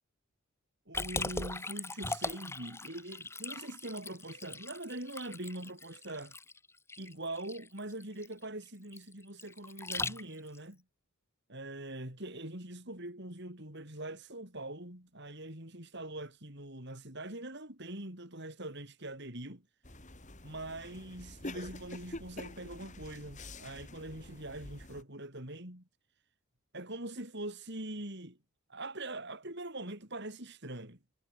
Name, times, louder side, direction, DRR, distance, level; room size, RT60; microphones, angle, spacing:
Liquid, 0.9-10.6, left 3 dB, 10° left, 2.1 m, -40 dB
voice 1, 0.9-6.4 7.0-10.8 11.5-19.6 20.4-25.9 26.7-28.4 28.7-31.0, right 1 dB, 50° right, 5.7 m, -43 dB
sound 1, 19.8-25.0, left 2 dB, 35° left, 4.0 m, -47 dB
head